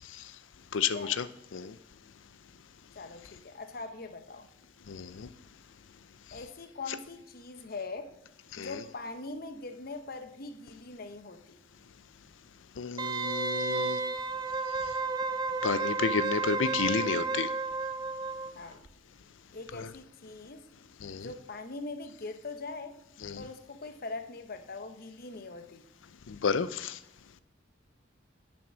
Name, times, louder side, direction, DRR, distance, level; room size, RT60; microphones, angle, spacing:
voice 1, 0.7-1.2 1.5-1.8 4.9-5.3 8.5-8.7 12.8-14.0 15.6-17.5 19.7-19.9 21.0-21.3 23.2-23.4 26.3-27.0, left 6 dB, 85° left, 0.5 m, -31 dB
voice 2, 2.9-4.5 6.3-8.1 8.6-11.6 18.5-18.8 19.5-20.7 21.1-23.0 23.4-25.9, left 3 dB, 50° left, 0.9 m, -42 dB
Wind instrument woodwind instrument, 13.0-18.5 18.8-18.9, right 4 dB, 20° right, 0.4 m, -32 dB
8.8 x 7.1 x 6.1 m
head